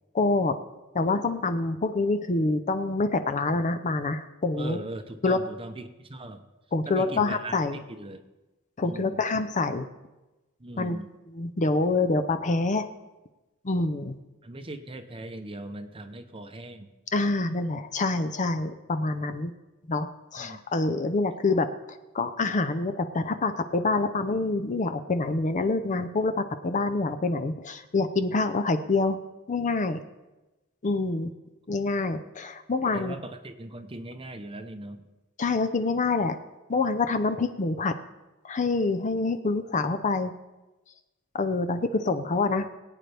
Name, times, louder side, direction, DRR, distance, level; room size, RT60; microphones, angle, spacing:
voice 1, 0.1-0.6 0.9-4.8 5.2-5.4 6.7-7.8 8.8-9.9 10.8-11.0 11.3-12.9 13.6-14.2 17.1-19.5 19.9-29.2 29.5-30.0 30.8-31.3 31.7-33.2 35.4-36.4 36.7-38.0 38.4-40.3 41.3-42.7, left 3 dB, 35° left, 9 dB, 0.6 m, -26 dB
voice 2, 4.6-6.4 6.9-8.2 8.8-9.2 10.6-11.1 14.4-16.9 20.4-20.6 32.9-35.1, right 1 dB, 25° right, 8 dB, 0.8 m, -39 dB
21.5 x 9.1 x 3.4 m, 1.1 s
head